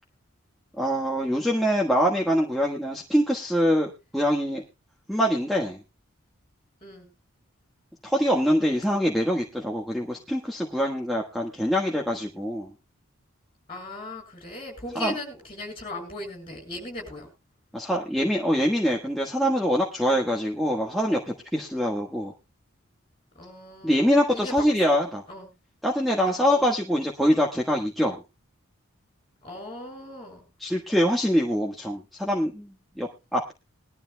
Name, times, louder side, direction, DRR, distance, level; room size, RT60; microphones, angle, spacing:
voice 1, 0.8-4.6 5.1-5.8 8.0-12.7 14.9-15.1 17.7-22.3 23.8-25.2 25.8-28.2 30.6-33.5, equal, ahead, -2 dB, 1.4 m, -24 dB
voice 2, 13.7-17.3 23.4-24.6 25.3-25.5 26.2-26.7 29.4-30.5, left 2 dB, 25° left, 2 dB, 7.0 m, -38 dB
21.5 x 12.0 x 2.2 m, 0.28 s
head